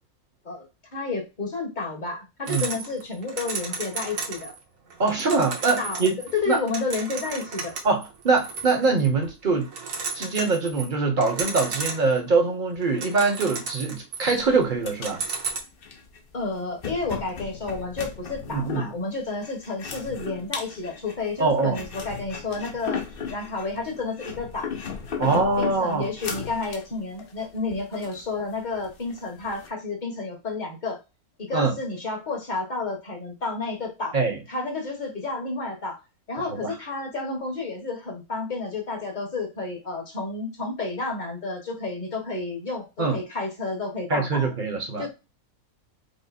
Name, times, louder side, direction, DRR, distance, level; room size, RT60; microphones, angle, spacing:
voice 1, 0.9-4.5 5.8-6.0 6.3-7.7 16.3-23.0 23.3-24.7 25.2-31.0 31.4-34.2 34.5-36.0 36.3-44.5 45.0-45.1, left 3 dB, 35° left, 1.2 m, -31 dB
sound 1, 2.5-4.6 4.9-9.3 9.6-10.9 11.2-12.3 12.7-14.5 14.9-15.6, right 4 dB, 65° right, 1.3 m, -34 dB
voice 2, 5.0-6.2 6.5-6.6 7.8-9.7 10.1-15.2 18.5-18.9 21.4-21.8 25.2-26.1 31.5-31.7 34.1-34.4 36.6-36.7 43.0-43.2 44.1-45.1, right 4 dB, 40° right, 1.0 m, -23 dB
sound 2, 14.4-29.7, left 6 dB, 50° left, 0.8 m, -37 dB
5.1 x 2.1 x 4.1 m
omnidirectional pair, 1.5 m